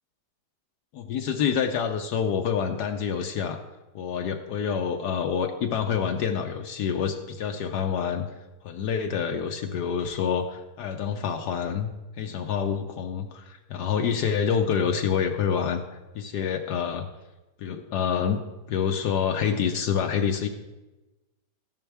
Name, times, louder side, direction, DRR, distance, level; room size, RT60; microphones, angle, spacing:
voice 1, 0.9-3.6 3.9-8.3 8.6-11.9 12.2-15.8 16.1-17.1 17.6-18.4 18.7-20.5, left 7 dB, 75° left, 4 dB, 1.3 m, -27 dB
13.5 x 10.5 x 3.4 m, 1.1 s
omnidirectional pair, 1.8 m